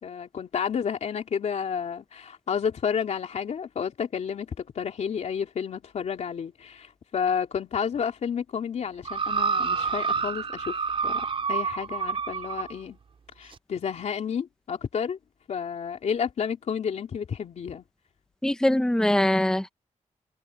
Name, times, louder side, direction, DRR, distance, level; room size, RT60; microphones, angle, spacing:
voice 1, 0.0-10.8 11.0-13.0 13.4-15.2 15.5-17.8, left 7 dB, 65° left, 3.2 m, -31 dB
sound 1, 9.1-12.7 13.5-13.6, right 5 dB, 45° right, 5.0 m, -28 dB
voice 2, 18.4-19.7, left 1 dB, 5° left, 1.3 m, -22 dB
wide cardioid pair, 170°, 13 cm